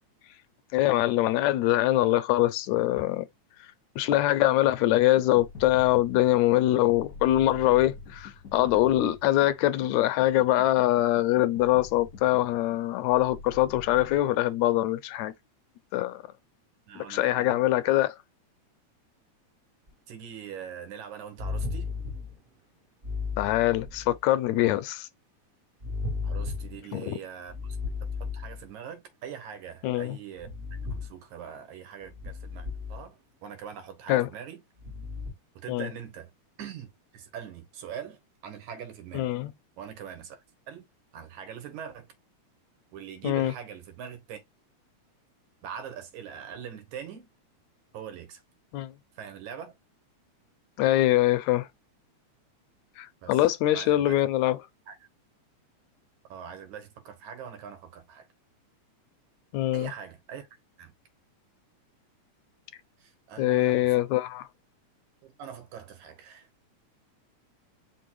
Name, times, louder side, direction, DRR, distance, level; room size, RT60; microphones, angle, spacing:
voice 1, 0.7-3.3 4.0-15.3 15.9-16.2 17.0-18.2 23.4-25.1 26.9-27.1 29.8-30.2 34.1-34.3 35.7-35.9 39.1-39.5 43.2-43.5 48.7-48.9 50.8-51.7 53.0-54.6 59.5-59.9 63.4-64.4, left 15 dB, 80° left, 1.9 m, -23 dB
sound 1, 5.4-14.2, left 4 dB, 50° left, 0.9 m, -45 dB
voice 2, 16.9-17.6 20.1-21.9 26.2-27.8 28.3-30.5 30.8-34.6 35.6-36.3 36.6-39.3 39.8-40.9 41.1-42.1 42.9-44.4 45.6-47.3 47.9-48.4 49.1-49.8 53.2-54.2 54.9-55.0 56.3-58.3 59.7-60.5 60.8-60.9 63.0-64.1 65.2-66.5, right 8 dB, 80° right, 2.6 m, -42 dB
sound 2, 19.9-20.0 21.4-22.4 23.0-24.2 25.8-26.8 27.5-28.7 30.4-31.1 32.1-33.0 34.8-35.3, left 4 dB, 50° right, 0.6 m, -34 dB
5.3 x 2.1 x 4.6 m
omnidirectional pair, 3.3 m